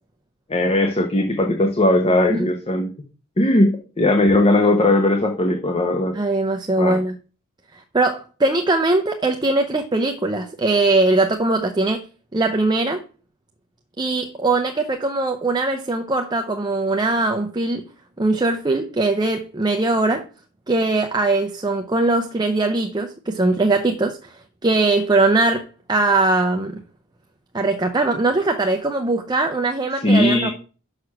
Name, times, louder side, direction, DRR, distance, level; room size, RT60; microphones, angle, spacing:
voice 1, 0.5-2.9 3.4-6.2 6.8-7.0 30.0-30.5, left 1 dB, 25° left, 0.9 m, -18 dB
voice 2, 6.1-7.1 7.9-12.1 12.3-13.0 14.0-17.8 18.2-20.2 20.7-24.3 24.6-26.8 27.5-30.5, right 2 dB, 20° right, 0.6 m, -21 dB
6.6 x 6.0 x 5.9 m
head